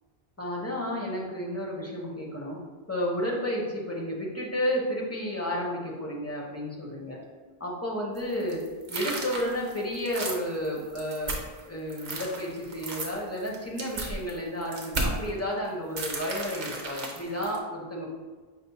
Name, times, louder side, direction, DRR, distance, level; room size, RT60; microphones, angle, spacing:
voice 1, 0.4-2.6 2.9-7.2 7.6-8.6 8.9-11.4 11.6-18.1, equal, 20° left, -3 dB, 0.5 m, -32 dB
sound 1, 8.2-11.6 11.9-15.3 16.0-17.6, right 2 dB, 50° right, 0.7 m, -34 dB
5.4 x 2.0 x 4.0 m, 1.4 s
omnidirectional pair, 1.0 m